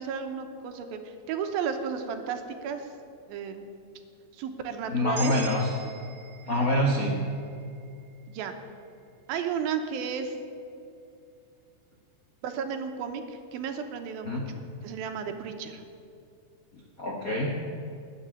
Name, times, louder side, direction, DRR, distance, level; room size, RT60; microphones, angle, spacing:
voice 1, 0.0-2.9 3.3-3.6 4.3-5.3 8.3-8.5 9.3-10.3 12.4-15.8, right 6 dB, 85° right, 6 dB, 2.8 m, -33 dB
voice 2, 4.9-5.7 6.5-7.1 14.2-14.4 16.7-17.5, left 1 dB, 70° left, -2 dB, 0.8 m, -26 dB
sound 1, 5.1-9.4, right 4 dB, 25° right, 1.2 m, -44 dB
19.0 x 6.7 x 8.8 m, 2.5 s
omnidirectional pair, 4.2 m